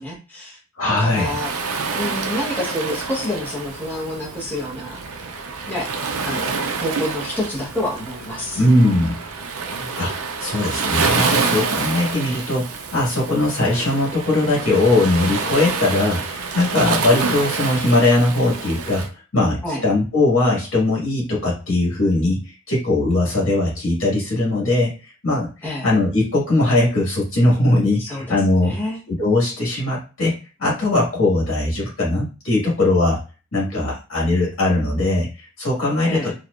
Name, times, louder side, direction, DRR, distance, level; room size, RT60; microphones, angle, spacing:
voice 1, 0.0-0.6 0.8-1.5 1.9-5.0 5.7-5.9 6.2-8.6 9.7-10.0 19.6-19.8 25.6-25.9 28.0-29.0 36.0-36.3, left 1 dB, 10° left, -5 dB, 1.2 m, -28 dB
voice 2, 0.8-1.3 8.5-9.2 9.9-10.1 10.4-19.1 19.3-28.7 29.1-30.3 30.6-33.2 33.5-36.3, left 2 dB, 60° left, -5 dB, 1.9 m, -20 dB
Waves surf, 1.1-19.1, right 4 dB, 75° right, 0.6 m, -27 dB
4.3 x 3.0 x 2.5 m, 0.34 s
head